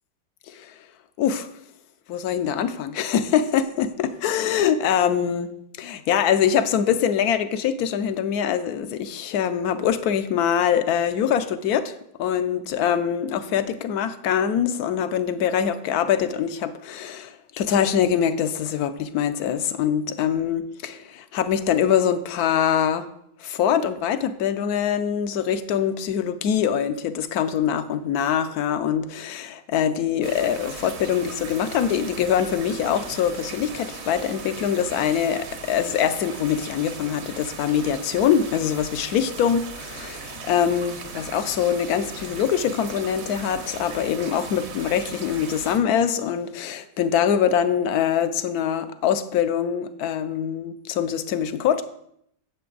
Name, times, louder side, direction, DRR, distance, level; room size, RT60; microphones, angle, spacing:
voice 1, 1.2-1.5 2.1-5.5 5.8-11.9 12.2-23.1 23.4-51.8, left 8 dB, 70° left, 11 dB, 1.0 m, -23 dB
sound 1, 30.2-45.8, right 4 dB, 50° right, 0.9 m, -38 dB
9.3 x 7.4 x 3.9 m, 0.73 s
omnidirectional pair, 2.0 m